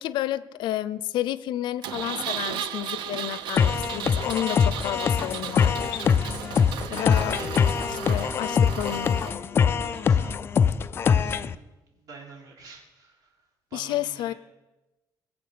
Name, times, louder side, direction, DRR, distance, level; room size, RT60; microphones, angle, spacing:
voice 1, 0.0-6.0 6.9-7.4 8.1-9.4 13.7-14.3, left 13 dB, 85° left, 18 dB, 0.6 m, -31 dB
Engine, 1.8-9.3, right 10 dB, 80° right, 0.8 m, -35 dB
sound 1, 2.9-4.4 5.2-10.6, left 3 dB, 15° left, 2.3 m, -43 dB
sound 2, 3.6-11.5, left 7 dB, 30° left, 0.4 m, -23 dB
voice 2, 6.8-8.6 9.7-10.4 10.8-11.6 11.9-14.3, right 4 dB, 50° right, -1 dB, 3.8 m, -46 dB
21.5 x 7.2 x 6.8 m, 1.1 s
cardioid pair, 175°, 8 cm